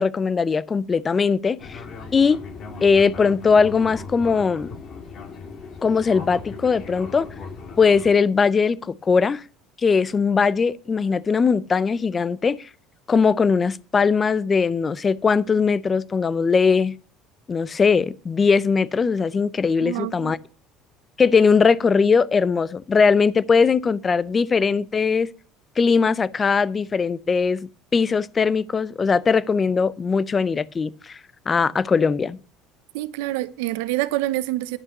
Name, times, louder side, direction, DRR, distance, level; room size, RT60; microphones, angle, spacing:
voice 1, 0.0-1.8 2.1-2.4 2.8-4.7 5.8-7.3 7.8-9.4 9.8-12.7 13.1-16.9 17.5-20.4 21.2-25.3 25.8-31.2 31.5-32.4, left 5 dB, 25° left, 0.5 m, -20 dB
Fixed-wing aircraft airplane, 1.6-8.1, left 4 dB, 45° left, 1.8 m, -38 dB
voice 2, 19.8-20.3 32.9-34.8, right 16 dB, 90° right, 0.7 m, -26 dB
11.0 x 5.7 x 6.6 m
supercardioid pair, 120°, 0 cm